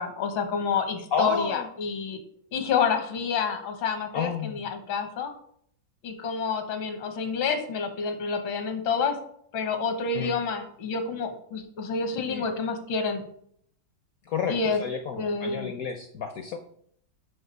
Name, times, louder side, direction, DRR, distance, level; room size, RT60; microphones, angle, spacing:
voice 1, 0.0-2.2 2.5-5.3 6.0-9.2 9.5-13.2 14.5-14.8 15.2-15.7, left 5 dB, 85° left, 6 dB, 1.8 m, -28 dB
voice 2, 1.1-1.7 4.1-4.7 10.1-10.3 12.3-12.4 14.3-16.6, left 6 dB, 70° left, 6 dB, 0.8 m, -30 dB
5.8 x 5.6 x 5.4 m, 0.66 s
omnidirectional pair, 2.1 m